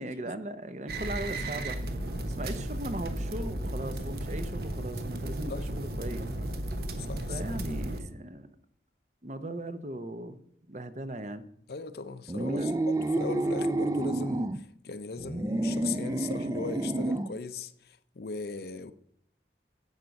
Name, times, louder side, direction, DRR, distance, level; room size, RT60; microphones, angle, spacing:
voice 1, 0.0-6.5 7.3-8.5 9.2-10.4 10.7-11.5 12.4-12.9, right 1 dB, 40° right, 0.8 m, -38 dB
sound 1, 0.9-8.0, right 1 dB, 60° right, 1.1 m, -34 dB
voice 2, 7.0-7.6 11.7-18.9, left 4 dB, 65° left, 0.6 m, -39 dB
sound 2, 12.3-14.6 15.2-17.4, right 2 dB, 20° right, 0.3 m, -29 dB
10.5 x 8.1 x 5.2 m
head